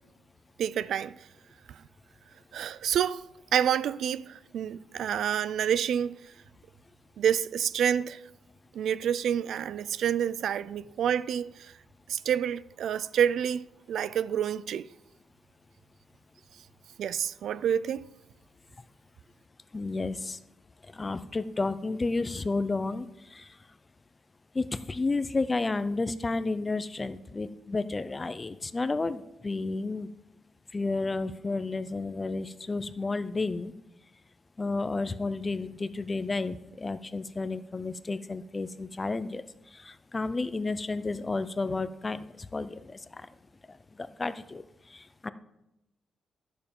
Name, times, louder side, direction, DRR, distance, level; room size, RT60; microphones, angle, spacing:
voice 1, 0.6-1.3 1.7-1.8 2.5-3.2 3.5-6.3 7.2-8.2 8.7-11.7 12.1-14.9 17.0-18.0, right 9 dB, 70° right, 0.3 m, -28 dB
voice 2, 19.7-20.4 20.9-23.5 24.5-30.1 30.7-33.7 34.6-39.4 39.7-43.3 44.0-44.6 44.9-45.3, left 3 dB, 20° left, 0.4 m, -31 dB
12.0 x 6.8 x 5.3 m
cardioid pair, 160°, 0 cm